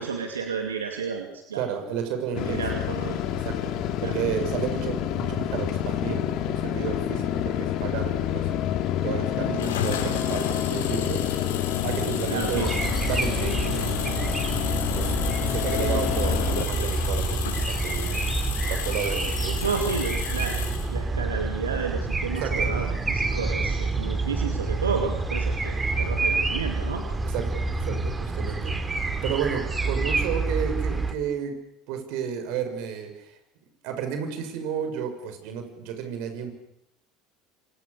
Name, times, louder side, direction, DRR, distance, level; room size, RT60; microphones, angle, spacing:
voice 1, 0.0-1.6 2.4-3.2 4.0-4.2 12.3-12.8 14.1-14.2 19.6-20.6 20.9-27.0, right 5 dB, 90° right, 3 dB, 2.5 m, -31 dB
voice 2, 1.6-2.6 3.3-8.5 9.0-11.2 11.8-12.6 13.0-18.3 18.7-19.7 22.4-22.7 27.3-31.5 31.9-33.4 33.8-36.5, right 8 dB, 65° right, 7 dB, 6.3 m, -32 dB
sound 1, 2.3-16.6, left 10 dB, 60° left, 2.7 m, -28 dB
sound 2, 9.5-20.9, left 8 dB, 80° left, 5.9 m, -34 dB
sound 3, 12.5-31.1, right 3 dB, 20° right, 3.8 m, -28 dB
28.0 x 26.5 x 6.9 m, 0.78 s
hypercardioid pair, 75°, 0 cm